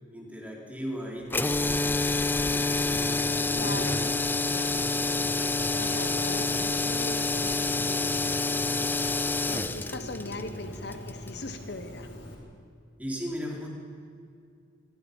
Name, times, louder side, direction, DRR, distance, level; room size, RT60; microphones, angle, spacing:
voice 1, 0.1-4.2 13.0-13.7, equal, 10° right, -2 dB, 4.1 m, -37 dB
sound 1, 1.3-11.4, left 3 dB, 10° left, 0.6 m, -28 dB
Bird, 2.6-12.3, left 1 dB, 75° left, 4.9 m, -42 dB
voice 2, 3.5-4.0 4.5-4.9 5.1-12.1, left 2 dB, 60° left, 7 dB, 1.3 m, -40 dB
27.0 x 22.0 x 5.5 m, 2.3 s
head